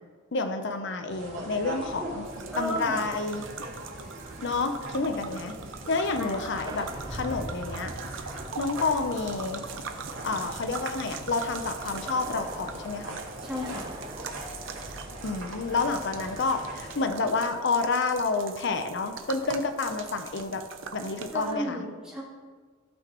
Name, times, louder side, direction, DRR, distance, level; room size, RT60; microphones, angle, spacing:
voice 1, 0.3-2.3 2.6-3.5 4.4-5.6 5.9-7.9 8.6-9.6 10.2-13.2 15.2-20.6 20.9-21.8, left 3 dB, 65° left, 7 dB, 0.7 m, -29 dB
sound 1, 1.1-17.0, right 1 dB, 85° right, 2.4 m, -40 dB
sound 2, 2.2-21.5, right 6 dB, 70° right, 0.7 m, -43 dB
voice 2, 2.5-3.0 6.2-6.3 13.4-13.9 21.3-22.2, equal, 5° right, -9 dB, 3.0 m, -33 dB
sound 3, 6.6-8.7 11.7-14.5, right 2 dB, 20° right, 0.6 m, -45 dB
14.5 x 6.0 x 3.0 m, 1.5 s
head